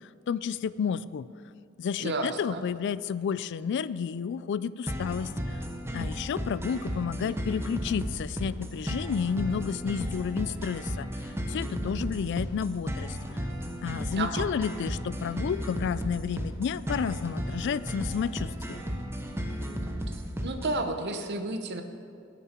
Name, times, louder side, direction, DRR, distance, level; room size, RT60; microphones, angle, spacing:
voice 1, 0.3-1.3 1.8-5.6 5.9-11.1 11.5-13.2 13.8-18.8, left 7 dB, 60° left, 17 dB, 0.3 m, -31 dB
voice 2, 2.0-2.6 14.1-14.5 20.4-21.8, right 2 dB, 55° right, 7 dB, 1.0 m, -31 dB
sound 1, 4.9-20.8, equal, 10° right, 0.9 m, -34 dB
18.0 x 7.2 x 4.5 m, 2.4 s
head